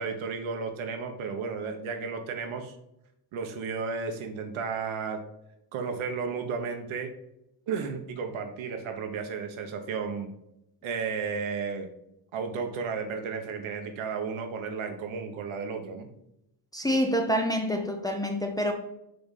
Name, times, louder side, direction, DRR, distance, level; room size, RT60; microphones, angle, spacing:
voice 1, 0.0-2.8 3.3-5.2 5.7-7.1 7.7-10.3 10.8-11.9 12.3-16.1, right 5 dB, 75° right, 1.2 m, -33 dB
voice 2, 16.7-18.7, equal, 10° left, 0.6 m, -27 dB
6.7 x 3.5 x 4.1 m
cardioid pair, 130°, 48 cm